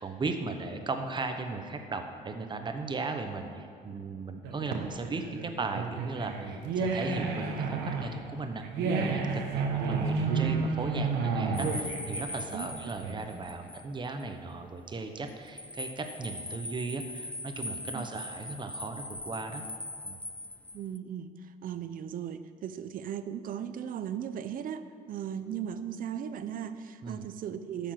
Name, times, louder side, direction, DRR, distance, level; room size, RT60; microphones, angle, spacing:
voice 1, 0.0-8.7 9.0-19.6 20.0-20.2 27.0-27.3, right 3 dB, 25° right, 6 dB, 1.0 m, -37 dB
sound 1, 4.4-13.5, right 4 dB, 90° right, 1.3 m, -31 dB
sound 2, 11.5-13.9 14.2-14.3 15.3-21.0, left 2 dB, 10° left, 0.3 m, -41 dB
voice 2, 20.7-27.9, right 9 dB, 55° right, 11 dB, 0.6 m, -37 dB
12.0 x 7.1 x 5.9 m, 2.3 s
cardioid pair, 110°, 17 cm